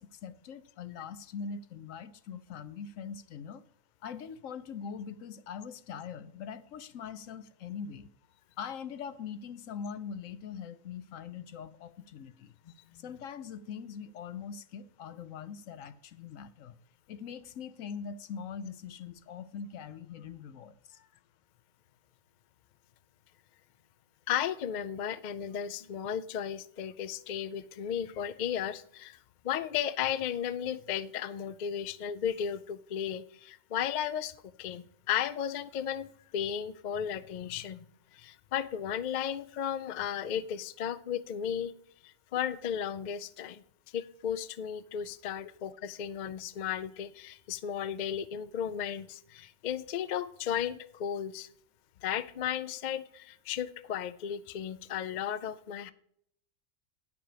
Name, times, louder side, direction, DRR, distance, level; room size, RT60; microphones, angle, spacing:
voice 1, 0.0-3.6 4.0-8.1 8.6-12.5 12.9-16.7 17.1-21.1, left 6 dB, 80° left, 1.1 m, -42 dB
voice 2, 24.3-29.2 29.4-34.3 34.6-37.8 38.1-41.7 42.0-43.6 43.9-51.5 52.0-55.9, left 9 dB, 60° left, 0.5 m, -34 dB
10.0 x 6.8 x 5.0 m
omnidirectional pair, 1.4 m